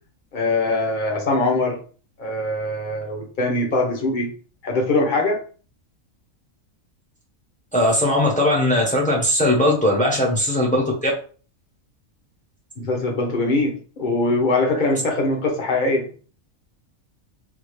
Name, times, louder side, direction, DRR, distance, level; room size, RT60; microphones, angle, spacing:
voice 1, 0.3-1.8 2.2-4.3 4.6-5.4 12.8-16.1, left 2 dB, 40° left, 1 dB, 0.9 m, -22 dB
voice 2, 7.7-11.1, left 1 dB, 5° left, -3 dB, 0.7 m, -19 dB
3.4 x 2.3 x 3.2 m, 0.40 s
omnidirectional pair, 1.4 m